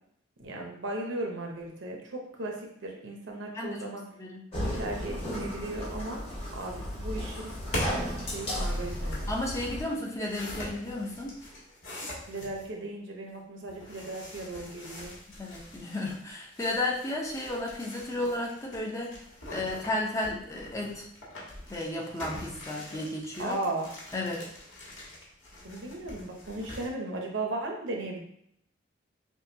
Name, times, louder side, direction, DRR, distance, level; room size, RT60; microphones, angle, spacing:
voice 1, 0.4-2.6 2.8-4.0 4.8-6.2 6.5-7.5 8.2-9.3 12.3-15.1 23.4-23.9 25.6-28.2, right 2 dB, 70° right, 1 dB, 0.8 m, -36 dB
voice 2, 3.5-3.9 4.2-4.5 9.3-11.4 15.4-19.2 19.5-21.1 21.7-23.6 24.1-24.5, left 1 dB, 15° left, -1 dB, 0.6 m, -33 dB
sound 1, 4.5-9.8, equal, 35° left, 1.4 m, -34 dB
sound 2, 7.4-12.7 13.7-26.9, left 1 dB, 90° left, 1.5 m, -42 dB
6.1 x 2.3 x 2.7 m, 0.72 s
head